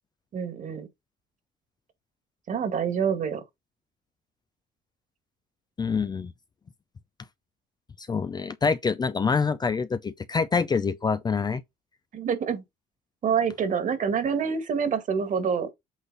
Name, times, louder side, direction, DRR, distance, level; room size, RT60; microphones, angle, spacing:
voice 1, 0.3-0.9 2.5-3.4 12.1-12.6 13.2-15.7, right 6 dB, 50° right, 2.0 m, -26 dB
voice 2, 5.8-6.3 8.0-11.6, left 5 dB, 25° left, 0.5 m, -26 dB
8.3 x 4.0 x 4.0 m
cardioid pair, 110°, 17 cm